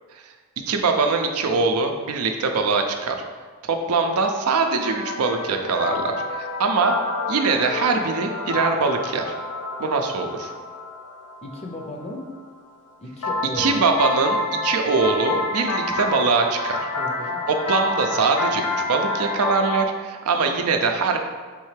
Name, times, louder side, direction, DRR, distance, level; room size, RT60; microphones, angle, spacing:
voice 1, 0.7-3.2 3.6-6.9 7.3-9.3 9.8-10.5 13.6-16.8 17.5-21.2, right 4 dB, 80° right, 4 dB, 0.5 m, -22 dB
sound 1, 4.8-12.3 13.2-19.8, left 2 dB, 80° left, 0.5 m, -28 dB
voice 2, 11.4-12.3 13.0-13.9 17.0-17.4, left 1 dB, 30° left, 1 dB, 0.5 m, -35 dB
5.1 x 3.2 x 3.2 m, 1.5 s
head